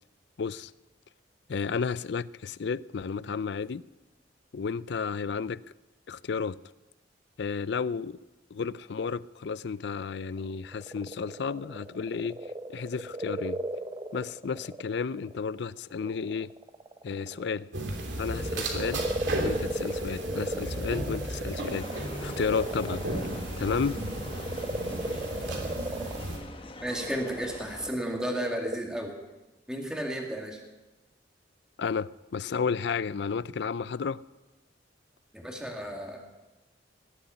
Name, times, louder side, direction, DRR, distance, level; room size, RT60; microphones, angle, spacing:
voice 1, 0.4-0.7 1.5-3.8 4.5-5.6 6.1-6.6 7.4-8.2 8.5-12.4 12.7-13.6 14.1-16.5 17.0-17.7 18.2-19.1 19.4-23.0 23.6-24.0 31.8-34.2, left 5 dB, 65° left, 0.4 m, -32 dB
sound 1, 10.4-15.4 15.9-17.6 18.1-28.8, right 1 dB, 25° right, 0.7 m, -36 dB
sound 2, 17.7-26.4, right 1 dB, 80° right, 3.0 m, -35 dB
sound 3, 21.7-27.9, left 2 dB, 30° left, 1.2 m, -44 dB
voice 2, 26.8-29.2 29.7-30.6 35.3-36.2, equal, 5° right, 2.2 m, -33 dB
18.0 x 8.2 x 9.5 m
head